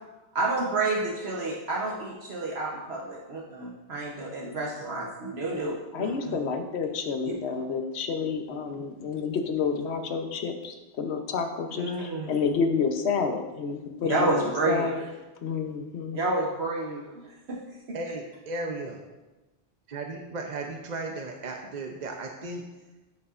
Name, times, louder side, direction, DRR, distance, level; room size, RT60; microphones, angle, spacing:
voice 1, 0.3-6.4 7.2-7.3 11.8-12.3 14.1-14.9 16.1-17.6, right 2 dB, 65° right, -3 dB, 1.2 m, -30 dB
voice 2, 5.9-15.0 15.4-16.2, left 5 dB, 70° left, 5 dB, 1.0 m, -29 dB
voice 3, 17.9-19.0 19.9-22.6, right 2 dB, 45° right, 2 dB, 0.7 m, -35 dB
11.5 x 5.5 x 2.5 m, 1.1 s
omnidirectional pair, 1.2 m